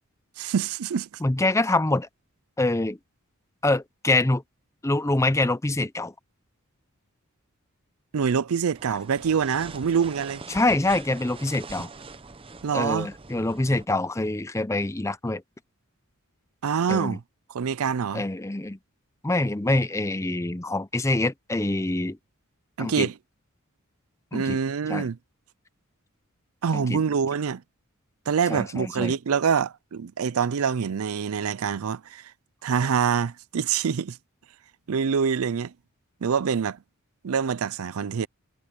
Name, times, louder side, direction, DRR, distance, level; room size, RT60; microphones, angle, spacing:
voice 1, 0.4-1.1 8.1-10.4 12.6-13.1 16.6-17.2 17.5-18.2 22.8-23.1 24.3-25.2 26.6-27.6 28.3-32.3 32.6-34.2 34.9-35.7 36.2-36.8 37.2-38.3, right 6 dB, 75° right, 0.5 m, -25 dB
voice 2, 1.2-2.1 2.6-3.0 3.6-4.4 4.8-6.1 10.5-11.9 12.7-15.4 16.9-17.2 18.1-18.8 19.2-22.2 22.8-23.1 24.3-24.6 24.9-25.1 26.7-27.0 28.5-29.1, left 2 dB, 15° left, 0.6 m, -25 dB
sound 1, 8.7-13.9, right 3 dB, 25° right, 0.7 m, -43 dB
head